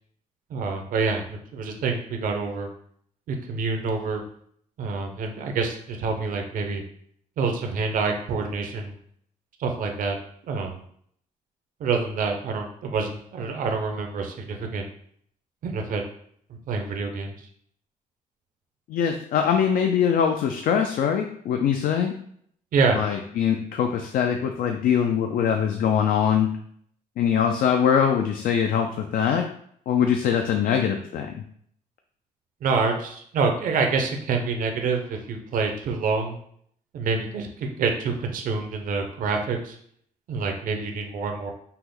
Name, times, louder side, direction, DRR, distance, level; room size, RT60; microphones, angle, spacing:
voice 1, 0.5-2.7 3.3-4.2 4.8-6.8 7.4-8.9 9.6-10.2 10.5-10.8 11.8-14.8 15.6-16.0 16.7-17.3 22.7-23.0 32.6-36.3 36.9-39.8 40.3-41.5, right 4 dB, 70° right, 4 dB, 0.7 m, -27 dB
voice 2, 18.9-22.1 22.9-26.5 27.2-29.4 29.9-31.4, left 8 dB, 75° left, 5 dB, 0.4 m, -22 dB
5.6 x 2.1 x 3.8 m, 0.64 s
cardioid pair, 135°, 15 cm